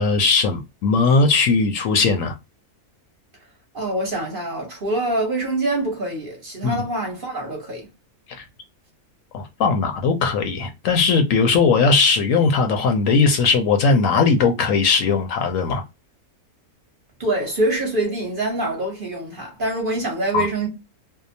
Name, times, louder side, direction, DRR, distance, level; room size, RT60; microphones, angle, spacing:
voice 1, 0.0-2.3 6.6-6.8 8.3-8.4 9.3-15.8 20.3-20.5, left 4 dB, 70° left, 0.9 m, -19 dB
voice 2, 3.7-7.9 17.2-20.7, right 2 dB, 40° right, 1.0 m, -25 dB
2.7 x 2.0 x 2.6 m
omnidirectional pair, 1.6 m